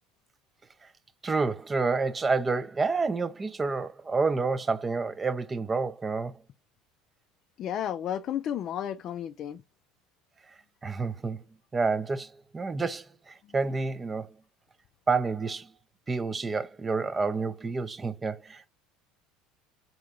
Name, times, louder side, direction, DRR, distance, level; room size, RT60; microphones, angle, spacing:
voice 1, 1.2-6.3 10.8-11.4 11.7-14.3 15.1-15.7 16.1-18.7, right 4 dB, 20° right, 0.4 m, -29 dB
voice 2, 7.6-9.6, left 10 dB, 50° left, 0.3 m, -32 dB
3.7 x 2.8 x 3.5 m
supercardioid pair, 105°, 0 cm